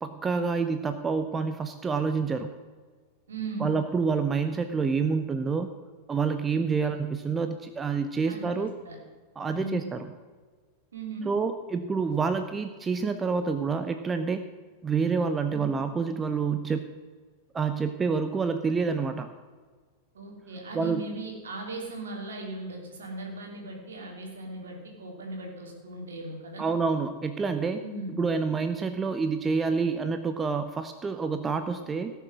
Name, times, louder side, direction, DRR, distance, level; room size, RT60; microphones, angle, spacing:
voice 1, 0.0-2.5 3.6-5.7 6.1-8.7 9.4-10.1 11.2-14.4 14.8-16.9 17.5-19.3 20.7-21.1 26.6-27.8 28.2-32.1, right 5 dB, 15° right, 8 dB, 0.7 m, -28 dB
voice 2, 3.3-3.7 8.3-9.0 9.5-9.9 10.9-11.3 15.5-15.8 20.1-26.7 27.8-28.2, right 2 dB, 65° right, 1 dB, 3.1 m, -38 dB
17.0 x 6.9 x 6.3 m, 1.5 s
figure-of-eight pair, 90°, 0 cm